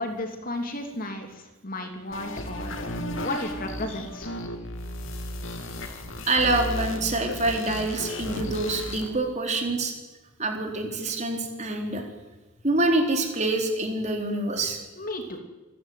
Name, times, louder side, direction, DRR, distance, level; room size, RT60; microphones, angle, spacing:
voice 1, 0.0-2.8 3.2-4.3 15.0-15.4, left 2 dB, 45° left, 5 dB, 3.1 m, -33 dB
sound 1, 2.1-9.1, left 1 dB, 75° left, 2.9 m, -34 dB
voice 2, 6.3-9.9 10.4-12.0 12.6-14.8, right 2 dB, 35° right, 3 dB, 3.6 m, -26 dB
27.5 x 12.0 x 9.3 m, 1.1 s
head